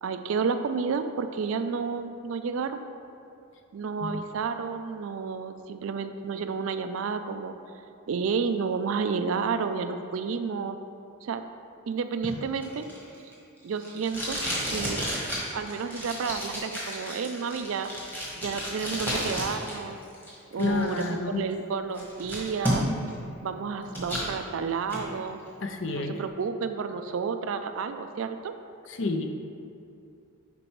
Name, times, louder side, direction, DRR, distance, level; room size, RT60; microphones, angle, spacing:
voice 1, 0.0-2.9 3.7-7.6 8.1-10.8 11.2-11.4 11.9-12.8 13.6-14.4 14.7-15.0 15.5-17.9 18.4-20.0 20.5-22.9 23.4-25.4 25.9-28.5, right 5 dB, 70° right, 9 dB, 0.4 m, -31 dB
Packing tape duct tape, 12.2-19.7 20.0-21.0 21.5-21.6 21.9-23.1 23.5-24.3 24.7-25.0, equal, 10° left, 1.3 m, -32 dB
voice 2, 20.6-21.4 25.6-26.2 28.9-29.2, left 3 dB, 60° left, 5 dB, 0.5 m, -29 dB
7.7 x 5.3 x 3.1 m, 2.5 s
head